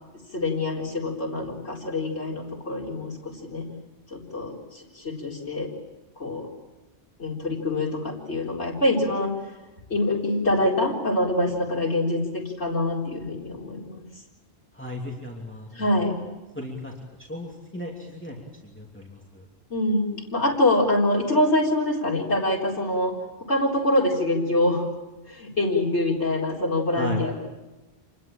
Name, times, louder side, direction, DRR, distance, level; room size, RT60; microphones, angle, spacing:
voice 1, 0.3-3.7 4.1-5.7 6.2-6.5 7.2-9.3 9.9-14.0 15.7-16.3 19.7-23.2 23.5-24.9 25.3-27.5, left 1 dB, 80° left, -3 dB, 4.5 m, -25 dB
voice 2, 14.7-15.9 16.5-16.9 17.2-18.4 18.6-19.5 26.9-27.3, left 1 dB, 10° left, -1 dB, 2.9 m, -36 dB
27.5 x 20.5 x 8.8 m, 1.1 s
omnidirectional pair, 1.1 m